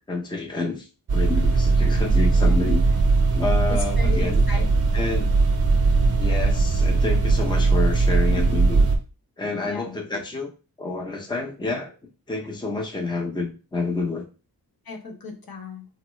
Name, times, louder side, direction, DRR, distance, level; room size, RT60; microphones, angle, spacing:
voice 1, 0.0-2.8 3.4-4.4 4.9-5.3 6.2-8.9 9.4-10.5 10.8-11.9 12.3-14.3, left 3 dB, 10° left, 0.6 m, -29 dB
sound 1, 1.1-9.0, right 3 dB, 40° right, 0.8 m, -19 dB
voice 2, 3.7-5.1 9.7-10.0 14.9-15.9, left 3 dB, 70° left, 0.9 m, -36 dB
3.5 x 2.1 x 3.1 m
cardioid pair, 75°, 38 cm